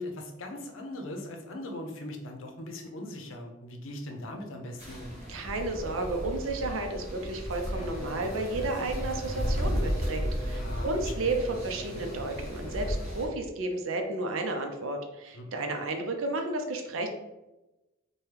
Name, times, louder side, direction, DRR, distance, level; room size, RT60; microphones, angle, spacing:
voice 1, 0.0-5.2 10.5-11.4 15.3-15.4, left 1 dB, 80° left, 3 dB, 0.7 m, -40 dB
sound 1, 4.8-13.2, equal, 35° right, 0.9 m, -34 dB
voice 2, 5.3-17.1, right 2 dB, 85° right, 4 dB, 0.5 m, -32 dB
Bowed string instrument, 7.7-13.3, equal, 35° left, 0.7 m, -44 dB
4.5 x 2.2 x 3.3 m, 1.0 s
head